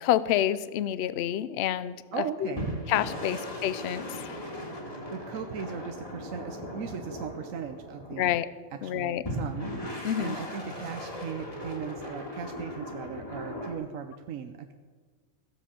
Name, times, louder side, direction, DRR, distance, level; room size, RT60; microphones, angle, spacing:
voice 1, 0.0-2.0 2.9-4.4 8.2-8.5 8.8-9.2 10.0-10.4, left 11 dB, 65° left, 16 dB, 0.7 m, -28 dB
voice 2, 2.1-2.7 4.9-8.4 8.8-14.7, right 7 dB, 75° right, 6 dB, 1.1 m, -38 dB
sound 1, 2.6-8.5 9.2-13.7, equal, 25° left, 2.4 m, -38 dB
15.5 x 7.6 x 7.0 m, 1.5 s
omnidirectional pair, 1.4 m